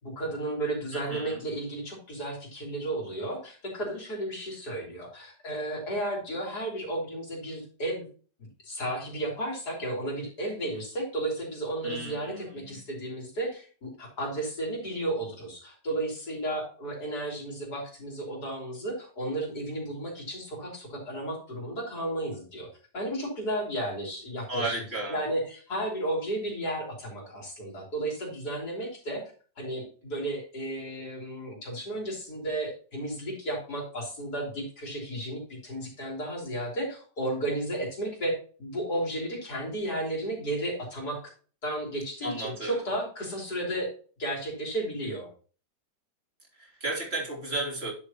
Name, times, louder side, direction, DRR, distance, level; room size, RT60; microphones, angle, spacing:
voice 1, 0.0-8.1 8.6-22.7 22.9-24.8 25.1-29.2 29.6-41.3 41.6-43.9 44.2-45.3, right 1 dB, 65° left, -2 dB, 4.0 m, -33 dB
voice 2, 0.9-1.4 11.8-12.8 24.5-25.2 42.2-42.8 46.5-47.9, right 2 dB, 35° right, -2 dB, 3.3 m, -34 dB
10.5 x 6.6 x 2.9 m, 0.39 s
omnidirectional pair, 1.8 m